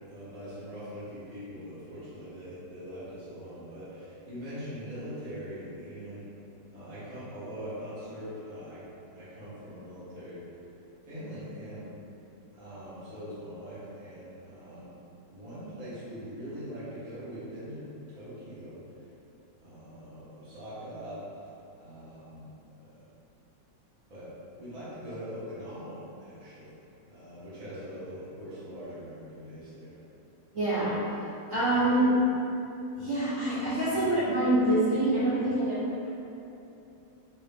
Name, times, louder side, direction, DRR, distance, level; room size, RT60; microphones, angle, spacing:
voice 1, 0.1-6.3 6.7-8.9 9.1-10.4 11.0-11.9 12.5-15.0 15.3-19.0 19.6-21.3 21.8-22.5 22.8-23.1 24.1-26.7 27.1-30.0, equal, 25° right, -13 dB, 1.0 m, -42 dB
voice 2, 30.5-31.0 31.5-32.1 33.0-35.8, right 1 dB, 50° right, -14 dB, 1.3 m, -25 dB
3.3 x 3.0 x 3.4 m, 2.9 s
omnidirectional pair, 2.1 m